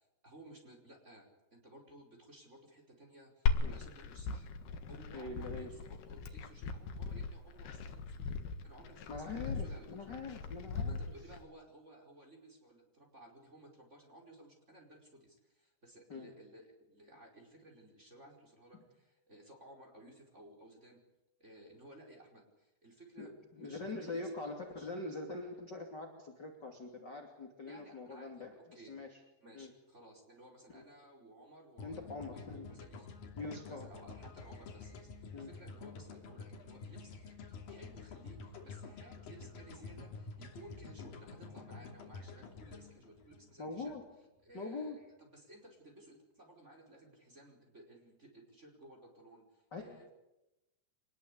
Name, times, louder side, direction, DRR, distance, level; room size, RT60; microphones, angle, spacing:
voice 1, 0.2-4.5 4.9-8.3 8.6-9.9 10.8-21.0 21.4-24.5 24.8-24.9 27.7-29.0 29.4-33.1 33.7-43.9 44.4-50.1, right 1 dB, 15° right, 1 dB, 5.0 m, -57 dB
Glass, 3.5-11.4, left 4 dB, 80° left, 3.7 m, -38 dB
voice 2, 5.1-5.7 9.1-11.0 16.1-16.3 23.2-29.2 29.5-29.7 30.7-30.8 31.8-32.7 33.4-33.9 35.3-35.5 43.6-44.1 44.5-45.0 49.7-49.8, left 3 dB, 30° left, 2 dB, 2.7 m, -43 dB
sound 1, 31.8-44.0, left 4 dB, 60° left, 4.5 m, -49 dB
24.5 x 20.5 x 8.5 m, 0.94 s
omnidirectional pair, 4.7 m